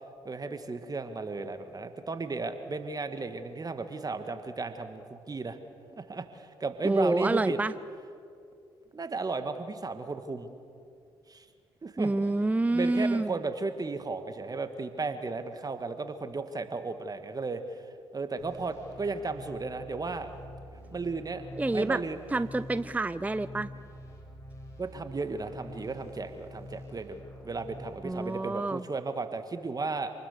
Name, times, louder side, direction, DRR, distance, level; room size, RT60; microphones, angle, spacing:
voice 1, 0.3-5.6 5.9-7.6 8.9-10.5 11.3-11.5 11.8-12.1 12.7-17.8 18.1-20.3 20.9-21.4 21.7-22.2 24.8-30.1, right 3 dB, 35° right, 9 dB, 1.9 m, -34 dB
voice 2, 6.8-7.7 12.0-13.3 21.6-22.0 22.3-23.7 28.0-28.8, right 2 dB, 15° right, 15 dB, 0.6 m, -27 dB
sound 1, 18.4-28.1, left 1 dB, 25° left, 7.0 m, -47 dB
28.0 x 20.0 x 6.8 m, 2.4 s
hypercardioid pair, 50°, 12 cm